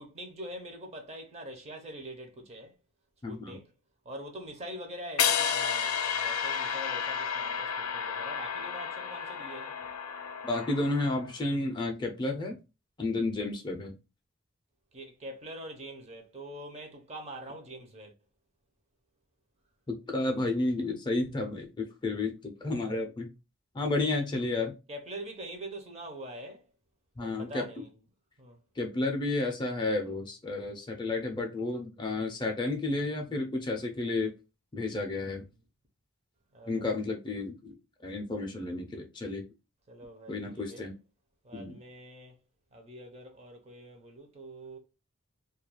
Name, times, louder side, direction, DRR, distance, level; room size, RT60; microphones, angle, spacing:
voice 1, 0.0-2.7 3.3-3.7 4.0-9.8 14.9-18.1 24.9-26.6 27.2-27.9 28.4-28.6 36.5-36.9 39.9-40.9 41.4-42.4 42.7-44.8, right 1 dB, 30° right, 0.5 m, -44 dB
voice 2, 3.2-3.6 10.4-12.6 13.0-13.9 19.9-23.3 23.7-24.8 27.2-27.8 28.8-34.3 34.7-35.4 36.7-37.8 38.0-39.4 40.3-40.9 41.5-41.8, left 2 dB, 20° left, 0.4 m, -31 dB
sound 1, 5.2-11.3, left 7 dB, 80° left, 0.5 m, -32 dB
2.3 x 2.2 x 2.9 m
head